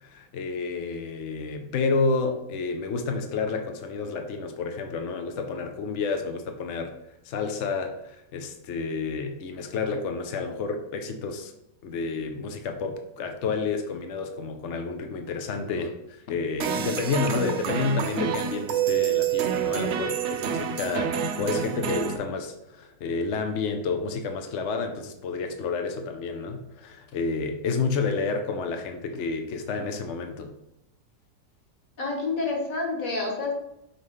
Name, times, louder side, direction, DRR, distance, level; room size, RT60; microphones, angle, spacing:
voice 1, 0.0-6.9 7.2-11.5 11.8-30.5, left 4 dB, 70° left, 5 dB, 0.7 m, -30 dB
sound 1, 16.6-22.2, right 8 dB, 80° right, 0.6 m, -27 dB
voice 2, 32.0-33.5, left 3 dB, 50° left, 0 dB, 1.8 m, -28 dB
6.3 x 3.2 x 5.4 m, 0.85 s
omnidirectional pair, 2.0 m